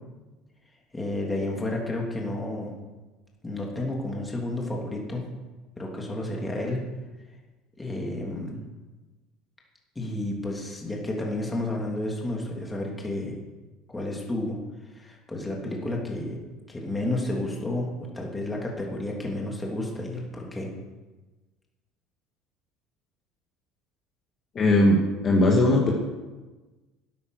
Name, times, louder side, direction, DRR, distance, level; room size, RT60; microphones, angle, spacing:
voice 1, 0.9-2.7 3.4-5.2 5.8-6.8 7.8-8.6 9.9-13.4 13.9-14.6 14.9-16.3 16.7-20.7, left 1 dB, 15° left, -1 dB, 3.1 m, -31 dB
voice 2, 24.6-25.0 25.2-25.9, left 1 dB, 35° left, -1 dB, 2.2 m, -19 dB
13.0 x 9.5 x 6.6 m, 1.2 s
supercardioid pair, 120°, 0 cm